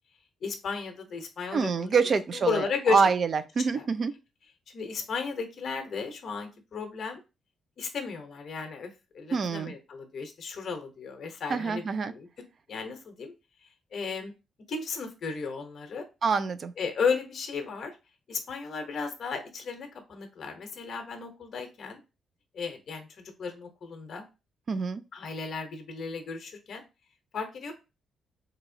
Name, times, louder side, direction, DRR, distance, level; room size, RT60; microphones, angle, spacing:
voice 1, 0.4-1.9 2.3-3.1 3.7-3.8 4.7-7.2 7.8-12.3 12.7-13.3 13.9-14.3 14.7-16.0 16.8-17.9 18.3-22.0 22.5-24.3 25.1-26.8 27.3-27.7, left 5 dB, 45° left, 0.7 m, -34 dB
voice 2, 1.5-4.1 9.3-9.7 11.5-12.1 16.2-16.7 24.7-25.0, right 5 dB, 40° right, 0.3 m, -26 dB
4.0 x 2.8 x 2.6 m
cardioid pair, 160°, 0 cm